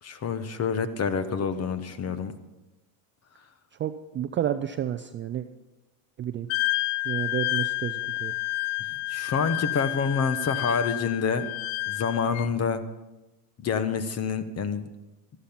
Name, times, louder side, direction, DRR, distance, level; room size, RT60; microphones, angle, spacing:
voice 1, 0.0-2.3 9.1-11.5 11.9-12.8 13.6-14.9, left 6 dB, 30° left, 12 dB, 1.1 m, -27 dB
voice 2, 3.8-5.5 6.2-6.5 7.1-8.3, right 10 dB, 25° right, 9 dB, 0.4 m, -30 dB
Wind instrument woodwind instrument, 6.5-12.5, left 21 dB, 65° left, 0.5 m, -30 dB
13.5 x 11.5 x 5.6 m, 1.1 s
supercardioid pair, 115°, 48 cm